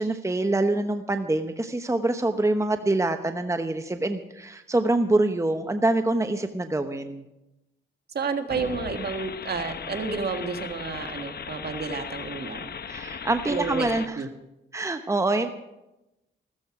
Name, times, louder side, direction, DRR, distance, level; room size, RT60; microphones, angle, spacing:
voice 1, 0.0-7.2 12.9-14.2 14.7-15.5, right 2 dB, 15° right, 8 dB, 1.0 m, -25 dB
voice 2, 8.1-12.7 13.4-13.9 14.1-14.3, right 5 dB, 55° right, 6 dB, 1.7 m, -30 dB
sound 1, 8.5-14.1, left 7 dB, 55° left, 0.8 m, -37 dB
15.0 x 14.0 x 4.9 m, 0.93 s
cardioid pair, 75°, 20 cm